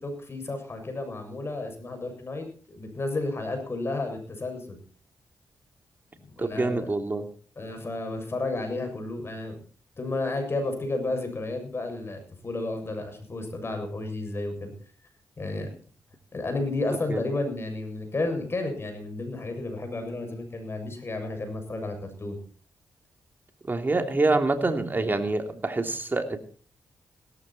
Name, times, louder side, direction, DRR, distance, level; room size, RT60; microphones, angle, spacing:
voice 1, 0.0-4.8 6.2-6.9 7.6-9.6 10.0-14.7 15.4-15.7 16.3-22.4, left 2 dB, 40° left, 6 dB, 7.3 m, -32 dB
voice 2, 6.4-7.2 17.1-17.2 23.7-26.4, right 2 dB, 30° right, 5 dB, 3.2 m, -26 dB
17.5 x 14.5 x 4.4 m, 0.41 s
cardioid pair, 60°, 6 cm